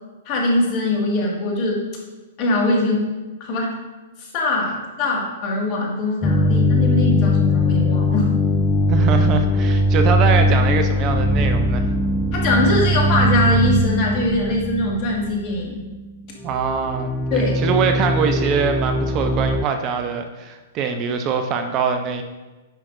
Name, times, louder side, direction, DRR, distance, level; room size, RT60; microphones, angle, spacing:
voice 1, 0.3-1.9 2.4-3.1 3.4-3.8 4.2-8.3 12.3-15.8 17.3-17.5, left 1 dB, 40° left, -1 dB, 1.9 m, -22 dB
sound 1, 6.2-16.2 16.4-19.7, left 1 dB, 10° left, 0.4 m, -20 dB
voice 2, 8.9-11.9 16.4-22.2, right 6 dB, 35° right, 6 dB, 0.6 m, -23 dB
9.0 x 5.8 x 2.6 m, 1.2 s
hypercardioid pair, 115°, 0 cm